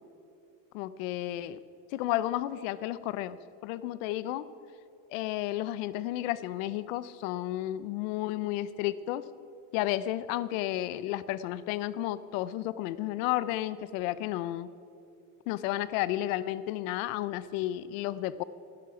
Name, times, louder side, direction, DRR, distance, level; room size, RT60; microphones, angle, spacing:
voice 1, 0.7-1.6 1.9-4.5 5.1-9.2 9.7-14.7 15.5-18.4, left 14 dB, 75° left, 16 dB, 0.7 m, -32 dB
15.0 x 11.5 x 4.9 m, 2.8 s
cardioid pair, 140°, 40 cm